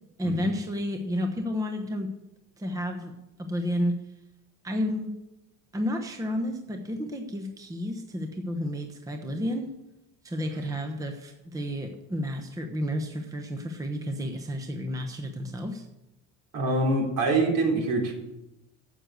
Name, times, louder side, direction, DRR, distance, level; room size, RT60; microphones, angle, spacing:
voice 1, 0.2-2.1 2.6-3.1 3.4-4.0 4.6-5.1 5.7-9.7 10.2-15.9, equal, 10° right, 4 dB, 1.0 m, -31 dB
voice 2, 16.5-18.1, right 2 dB, 60° right, 1 dB, 3.7 m, -25 dB
9.9 x 7.8 x 8.2 m, 0.93 s
cardioid pair, 130°, 36 cm